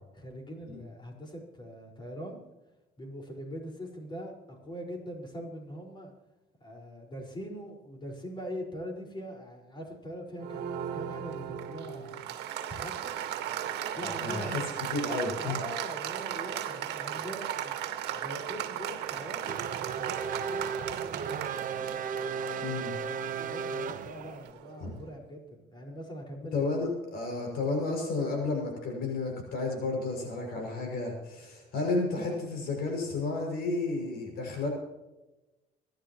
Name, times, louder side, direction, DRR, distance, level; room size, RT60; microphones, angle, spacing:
voice 1, 0.1-2.4 3.0-6.1 6.6-12.4 12.7-13.2 13.9-14.5 15.4-17.8 18.1-20.2 20.5-22.0 23.4-26.6, equal, 25° left, 0 dB, 5.1 m, -42 dB
Applause, 10.4-24.8, right 10 dB, 75° right, 1.7 m, -37 dB
voice 2, 14.0-14.6 14.9-15.6 22.6-22.9 24.8-24.9 26.5-34.7, left 3 dB, 65° left, 1 dB, 6.4 m, -32 dB
Race car auto racing / Accelerating revving vroom, 19.0-24.5, right 6 dB, 50° right, 1.1 m, -35 dB
26.0 x 12.0 x 3.1 m, 1.1 s
cardioid pair, 110°, 17 cm